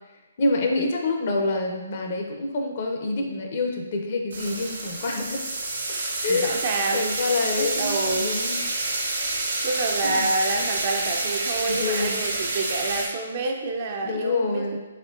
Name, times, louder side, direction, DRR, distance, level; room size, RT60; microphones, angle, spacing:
voice 1, 0.4-5.4 6.2-6.6 6.9-8.7 10.0-10.3 11.7-12.2 14.0-14.8, left 3 dB, 40° left, 2 dB, 0.6 m, -27 dB
sound 1, 4.3-13.1, right 2 dB, 80° right, 1.2 m, -28 dB
voice 2, 6.3-7.1 7.5-8.3 9.6-14.8, right 3 dB, 35° right, 2 dB, 0.5 m, -28 dB
4.3 x 4.2 x 2.5 m, 1.2 s
hypercardioid pair, 165°, 0 cm